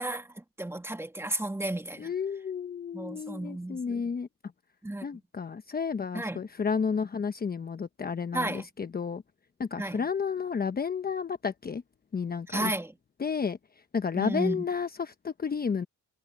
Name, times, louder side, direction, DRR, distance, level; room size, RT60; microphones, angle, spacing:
voice 1, 0.0-2.1 2.9-4.0 4.8-5.1 6.1-6.4 8.3-8.7 9.8-10.1 12.5-12.9 14.2-14.7, right 1 dB, 10° right, 1.9 m, -33 dB
voice 2, 2.0-4.3 5.0-9.2 9.6-11.8 12.1-12.7 13.2-13.6 13.9-15.9, left 6 dB, 30° left, 1.0 m, -31 dB
cardioid pair, 90°, 30 cm